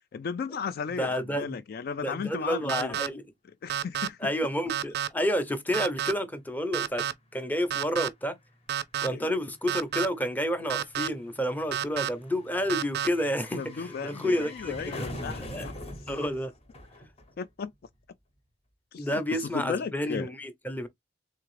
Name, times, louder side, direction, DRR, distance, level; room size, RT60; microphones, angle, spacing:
voice 1, 0.1-3.0 3.6-4.3 9.1-9.3 13.6-15.8 16.1-16.2 17.4-17.7 18.9-20.3, left 6 dB, 55° left, 0.3 m, -35 dB
voice 2, 1.0-1.6 2.0-3.2 4.2-7.1 7.3-8.4 9.0-15.1 15.4-15.7 16.1-16.5 19.0-20.9, equal, 10° left, 0.7 m, -30 dB
sound 1, 2.7-3.1 3.7-4.1 4.7-5.1 5.7-6.1 6.7-7.1 7.7-8.1 8.7-9.1 9.7-10.1 10.7-11.1 11.7-12.1 12.7-13.1, right 9 dB, 60° right, 0.4 m, -29 dB
sound 2, 7.3-17.7 17.9-18.0, left 1 dB, 35° left, 0.9 m, -44 dB
3.6 x 3.3 x 3.2 m
head